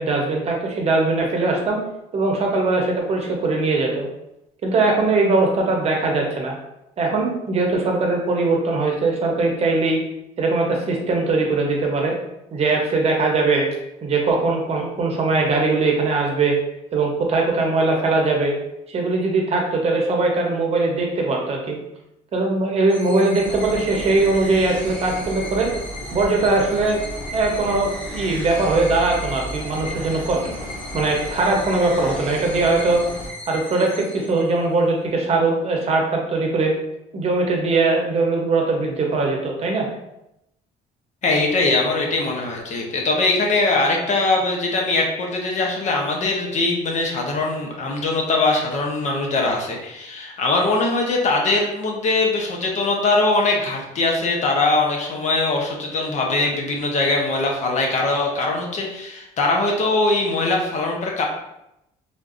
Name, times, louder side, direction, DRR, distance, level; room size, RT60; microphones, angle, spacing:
voice 1, 0.0-1.8 2.1-4.1 4.6-6.6 7.0-10.0 10.4-12.1 12.5-13.7 14.0-16.6 16.9-18.6 18.9-21.8 22.3-25.7 26.1-27.0 27.3-30.4 30.9-33.0 33.5-36.8 37.1-39.9, right 3 dB, 40° right, 0 dB, 0.8 m, -20 dB
sound 1, 22.9-34.8, left 1 dB, 10° left, 0.9 m, -37 dB
sound 2, 23.4-33.3, equal, 85° left, 1.4 m, -35 dB
voice 2, 41.2-61.2, left 2 dB, 50° left, 0 dB, 0.8 m, -21 dB
3.5 x 2.6 x 2.5 m, 0.86 s
cardioid pair, 105°, 16 cm